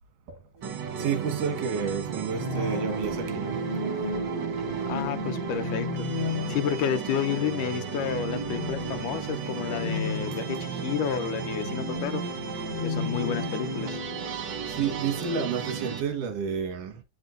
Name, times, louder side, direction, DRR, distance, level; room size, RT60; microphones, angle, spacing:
sound 1, 0.6-15.9, left 3 dB, 50° left, 0.6 m, -36 dB
sound 2, 0.6-16.0, right 6 dB, 70° right, 1.0 m, -34 dB
voice 1, 1.0-3.7 10.3-10.6 14.4-17.0, right 7 dB, 85° right, 2.9 m, -31 dB
voice 2, 4.9-6.1 6.5-12.2 12.8-14.0, left 9 dB, 85° left, 2.3 m, -30 dB
8.3 x 7.5 x 2.5 m
omnidirectional pair, 3.6 m